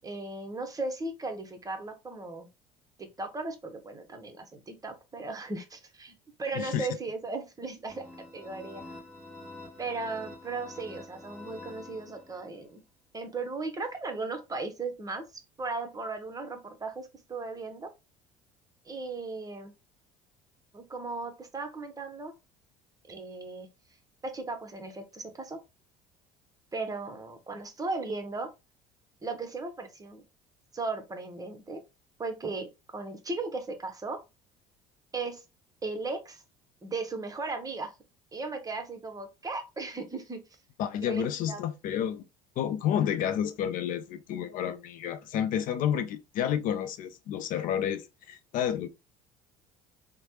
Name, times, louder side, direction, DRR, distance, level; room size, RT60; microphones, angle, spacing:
voice 1, 0.0-2.5 3.0-6.1 6.4-8.0 8.3-8.8 9.8-12.8 13.1-17.9 18.9-19.7 20.7-22.3 23.1-23.7 24.2-25.6 26.7-28.5 29.2-30.2 30.7-31.8 32.2-34.2 35.1-35.4 35.8-36.4 36.8-37.9 38.3-40.4 41.1-41.6, right 3 dB, 20° right, 0.8 m, -36 dB
voice 2, 6.5-6.9 40.8-42.2 42.6-48.9, left 9 dB, 55° left, 0.4 m, -30 dB
sound 1, 7.9-12.6, left 2 dB, 5° left, 1.5 m, -47 dB
3.1 x 2.1 x 2.8 m
hypercardioid pair, 75°, 17 cm